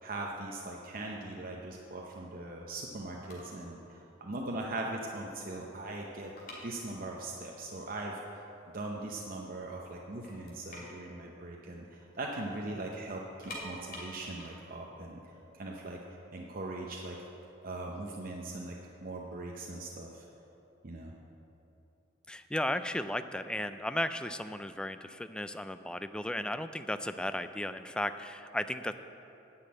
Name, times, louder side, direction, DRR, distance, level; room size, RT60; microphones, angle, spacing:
voice 1, 0.0-6.3 6.6-8.4 8.7-15.2 15.5-16.0 16.3-17.2 17.6-20.2 20.8-21.1, right 2 dB, 50° right, -1 dB, 0.8 m, -40 dB
sound 1, 3.2-3.7 4.0-4.2 4.7-4.8 5.1-7.3 7.6-7.7 8.3-8.4 8.8-9.5 9.9-10.0 10.2-12.2 12.5-12.6 13.2-16.1 16.8-18.6, left 1 dB, 50° left, 2.5 m, -48 dB
voice 2, 22.3-28.9, left 1 dB, 5° left, 10 dB, 0.3 m, -35 dB
9.7 x 6.1 x 8.5 m, 2.9 s
head